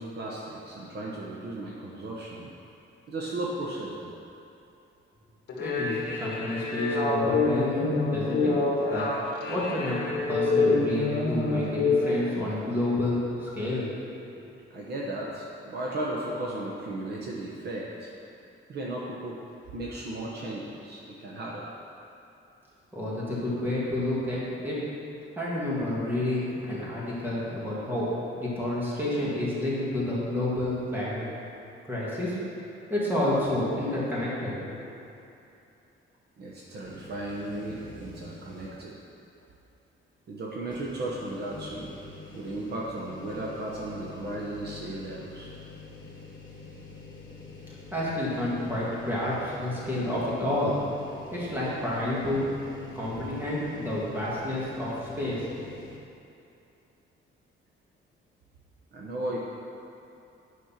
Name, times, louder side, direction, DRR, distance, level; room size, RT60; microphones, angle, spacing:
voice 1, 0.0-2.5 3.1-4.1 14.7-18.1 18.7-19.4 19.7-21.7 36.4-38.9 40.3-41.9 42.3-45.5 58.9-59.4, right 1 dB, 50° right, -3 dB, 1.1 m, -35 dB
sound 1, 5.5-12.2, left 3 dB, 55° left, 1.7 m, -26 dB
voice 2, 5.6-8.5 8.9-9.0 9.5-13.9 22.9-24.8 25.4-28.1 28.4-31.2 31.9-32.4 32.9-34.9 47.9-50.7 51.3-52.5 52.9-54.9 55.2-55.4, left 1 dB, 10° right, -8 dB, 2.2 m, -29 dB
sound 2, 36.8-39.0 39.4-39.5 40.6-56.0, left 3 dB, 20° left, 1.5 m, -46 dB
9.4 x 5.6 x 5.8 m, 2.8 s
cardioid pair, 170°, 21 cm